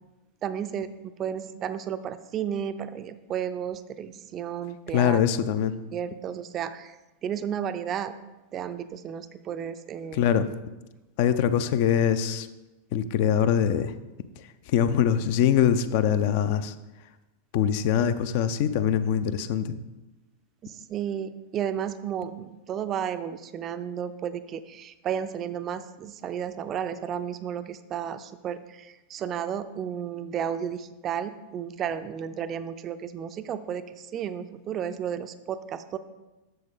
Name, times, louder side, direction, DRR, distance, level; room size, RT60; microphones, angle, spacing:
voice 1, 0.4-5.2 5.9-8.1 8.5-10.3 20.6-36.0, right 8 dB, 30° right, 12 dB, 0.4 m, -33 dB
voice 2, 4.9-5.7 10.1-10.5 11.2-12.5 12.9-14.0 14.4-16.7 17.5-19.8, left 9 dB, 50° left, 12 dB, 0.4 m, -23 dB
7.7 x 6.6 x 3.7 m, 1.1 s
figure-of-eight pair, 90°, 0 cm